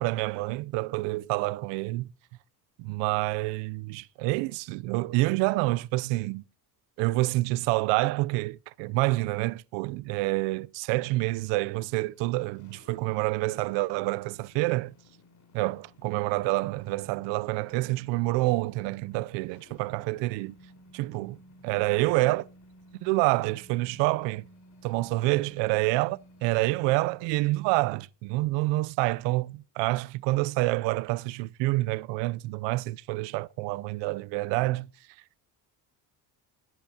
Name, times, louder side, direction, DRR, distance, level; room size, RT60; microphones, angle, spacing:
voice 1, 0.0-2.1 2.8-6.4 7.0-14.9 15.5-20.5 20.9-21.4 21.6-22.4 23.0-24.4 24.8-34.9, right 21 dB, 85° right, 0.5 m, -27 dB
sound 1, 10.9-27.0, equal, 45° left, 4.3 m, -56 dB
21.0 x 10.5 x 2.8 m
cardioid pair, 135°, 42 cm